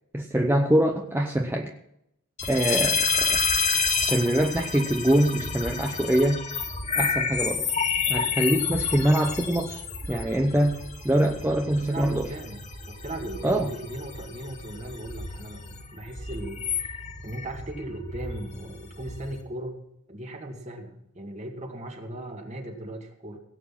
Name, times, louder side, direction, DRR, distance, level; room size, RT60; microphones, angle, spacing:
voice 1, 0.1-1.7 2.5-3.4 4.1-6.4 6.9-7.7 8.1-12.3 13.4-13.7, right 1 dB, 10° right, 3 dB, 0.8 m, -24 dB
sound 1, 2.4-19.4, left 5 dB, 35° left, 2.0 m, -30 dB
voice 2, 11.9-19.8 20.1-23.4, right 1 dB, 35° right, 3 dB, 2.2 m, -38 dB
17.5 x 8.1 x 5.9 m, 0.78 s
head